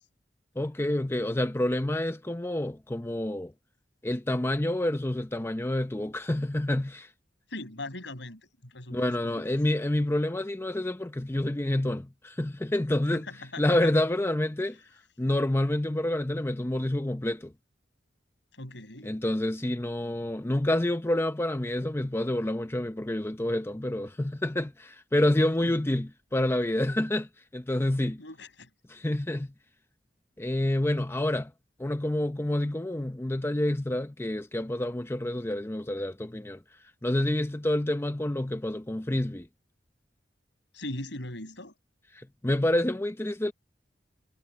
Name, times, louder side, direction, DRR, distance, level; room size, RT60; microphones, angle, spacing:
voice 1, 0.6-3.5 4.0-7.1 8.9-13.3 13.6-14.8 15.2-17.5 19.0-28.2 28.9-29.5 30.4-31.5 31.8-36.6 37.0-39.5 42.1-43.5, left 1 dB, 15° left, 0.6 m, -28 dB
voice 2, 7.5-9.4 13.1-13.9 18.5-19.2 25.6-25.8 28.2-28.7 40.7-41.7, left 2 dB, 75° left, 5.8 m, -40 dB
head